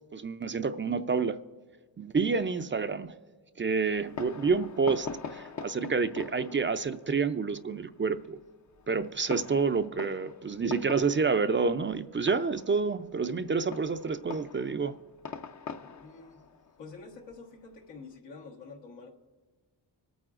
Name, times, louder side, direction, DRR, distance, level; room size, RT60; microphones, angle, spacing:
voice 1, 0.1-1.4 2.0-3.1 3.6-8.4 8.9-14.9, right 4 dB, 30° right, 10 dB, 0.5 m, -28 dB
Fireworks, 3.9-18.1, left 5 dB, 45° left, 0.7 m, -44 dB
voice 2, 15.8-16.4 16.8-19.1, left 4 dB, 85° left, 0 dB, 1.5 m, -47 dB
24.5 x 9.1 x 2.5 m, 1.4 s
cardioid pair, 55°, 41 cm